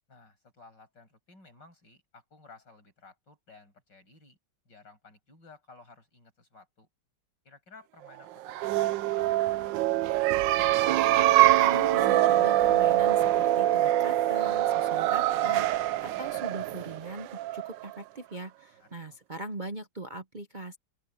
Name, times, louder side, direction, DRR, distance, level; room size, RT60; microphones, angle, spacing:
voice 1, 0.1-4.4 4.7-6.9 7.4-10.6 18.8-19.2, left 3 dB, 75° left, 7.4 m, -55 dB
sound 1, 8.4-17.9, right 14 dB, 90° right, 1.4 m, -24 dB
voice 2, 11.6-20.8, right 2 dB, 35° right, 0.9 m, -41 dB
open air
omnidirectional pair, 1.9 m